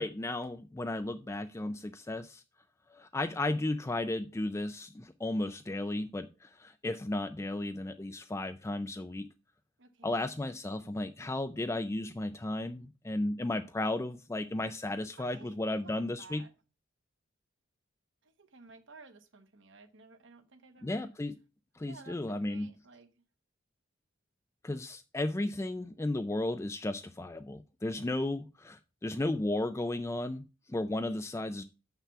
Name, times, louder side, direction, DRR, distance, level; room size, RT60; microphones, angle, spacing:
voice 1, 0.0-2.4 2.9-9.3 10.0-16.4 20.8-21.3 21.8-22.7 24.6-31.6, left 2 dB, 15° left, 0.4 m, -34 dB
voice 2, 9.8-10.2 15.2-16.5 18.2-21.2 21.9-22.2 22.4-23.1, right 4 dB, 60° right, 1.1 m, -55 dB
6.9 x 5.8 x 5.7 m
head